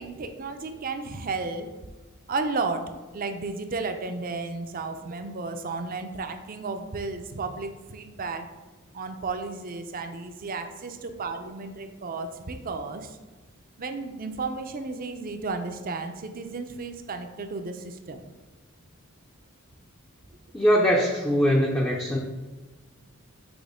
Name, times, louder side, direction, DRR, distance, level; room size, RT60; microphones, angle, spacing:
voice 1, 0.0-1.7 2.3-2.8 3.1-8.5 8.9-13.2 13.8-18.2, right 3 dB, 45° right, 7 dB, 0.6 m, -33 dB
voice 2, 20.5-22.2, equal, 10° left, -2 dB, 0.5 m, -22 dB
6.2 x 3.1 x 5.0 m, 1.3 s
head